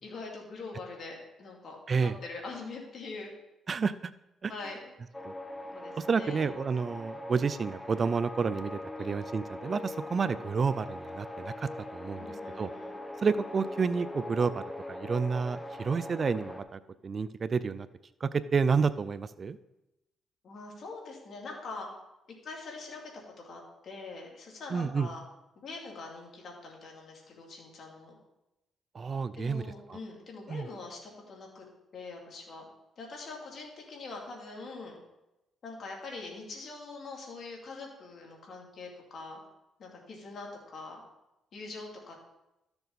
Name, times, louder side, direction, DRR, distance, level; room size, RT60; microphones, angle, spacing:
voice 1, 0.0-3.3 4.5-4.9 5.7-6.5 9.0-9.2 12.2-13.0 20.4-21.9 22.4-25.2 25.6-28.2 29.3-31.6 31.9-32.7 33.0-35.0 35.6-39.4 39.8-41.0 41.5-42.2, left 3 dB, 55° left, -1 dB, 2.8 m, -43 dB
sound 1, 5.1-16.6, left 1 dB, 15° left, 1.0 m, -41 dB
voice 2, 6.0-12.7 13.2-17.9 18.2-19.6 24.7-25.1 28.9-29.6 29.9-30.0 30.5-30.7, right 5 dB, 40° right, 15 dB, 0.4 m, -30 dB
13.0 x 6.8 x 4.1 m, 0.95 s
cardioid pair, 90°, 0 cm